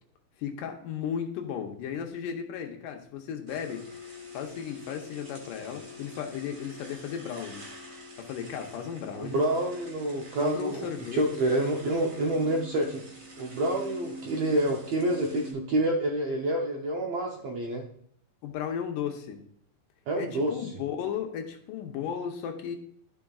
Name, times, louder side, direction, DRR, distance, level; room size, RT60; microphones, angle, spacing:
voice 1, 0.4-7.6 8.2-9.4 10.4-11.2 18.4-19.4 20.2-22.8, left 8 dB, 80° left, 3 dB, 2.5 m, -35 dB
sound 1, 3.5-15.5, left 2 dB, 45° right, 1.0 m, -45 dB
voice 2, 9.2-13.0 13.4-17.8 20.1-20.7, right 1 dB, 70° right, 0 dB, 1.5 m, -28 dB
12.5 x 5.4 x 2.4 m, 0.64 s
omnidirectional pair, 3.8 m